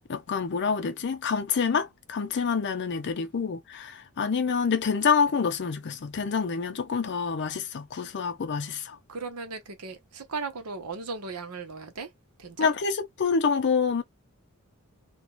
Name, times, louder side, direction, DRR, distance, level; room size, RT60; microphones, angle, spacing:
voice 1, 0.1-9.0 12.6-14.0, left 5 dB, 50° left, 0.5 m, -27 dB
voice 2, 9.1-12.1 12.4-12.7, right 4 dB, 90° right, 0.9 m, -36 dB
2.5 x 2.2 x 2.9 m
head